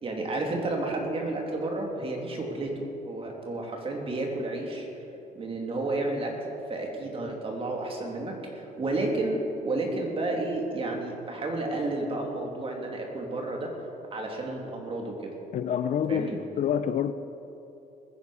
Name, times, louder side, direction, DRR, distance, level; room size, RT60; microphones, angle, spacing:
voice 1, 0.0-4.9 5.3-6.4 6.7-13.7 14.1-15.3 16.1-16.4, right 2 dB, 35° right, 1 dB, 2.7 m, -31 dB
voice 2, 15.5-17.1, left 8 dB, 50° left, 12 dB, 0.6 m, -27 dB
21.0 x 10.5 x 4.9 m, 2.9 s
cardioid pair, 110°, 17 cm